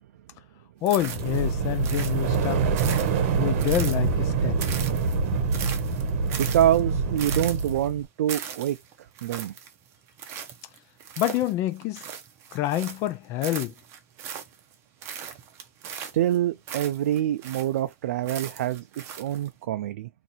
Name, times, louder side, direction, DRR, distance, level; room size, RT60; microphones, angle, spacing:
voice 1, 0.8-2.6 3.4-4.8 11.2-12.0 12.5-13.7, left 13 dB, 35° left, 0.5 m, -27 dB
sound 1, 0.9-1.6 1.8-4.3 4.6-13.1 13.4-14.7 15.0-17.9 18.2-19.5, right 8 dB, 35° right, 0.8 m, -39 dB
sound 2, 1.0-8.0, right 5 dB, 55° right, 1.0 m, -25 dB
voice 2, 6.4-8.8 9.2-9.5 15.9-20.1, right 12 dB, 75° right, 0.4 m, -26 dB
2.7 x 2.6 x 4.1 m
supercardioid pair, 140°, 8 cm